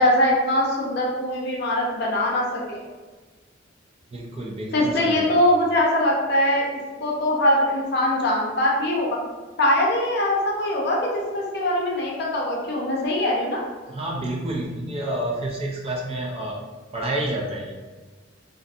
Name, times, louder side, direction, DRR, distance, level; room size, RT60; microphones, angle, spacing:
voice 1, 0.0-2.8 4.7-6.6 7.0-9.2 9.6-13.6, left 1 dB, 55° left, -3 dB, 0.6 m, -22 dB
voice 2, 4.1-5.3 13.9-16.6 16.9-17.7, right 1 dB, 30° right, -1 dB, 0.4 m, -29 dB
2.5 x 2.5 x 2.3 m, 1.3 s
head